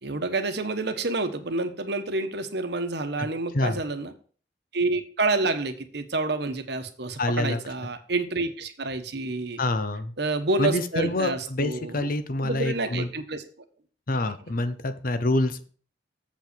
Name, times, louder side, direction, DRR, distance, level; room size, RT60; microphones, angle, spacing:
voice 1, 0.0-4.1 4.7-9.6 10.2-12.1 12.4-13.4, right 2 dB, 65° right, 8 dB, 1.2 m, -28 dB
voice 2, 7.2-7.6 9.6-10.1 10.6-13.1 14.1-15.6, left 2 dB, 50° left, 11 dB, 0.8 m, -26 dB
7.8 x 5.2 x 6.8 m, 0.43 s
head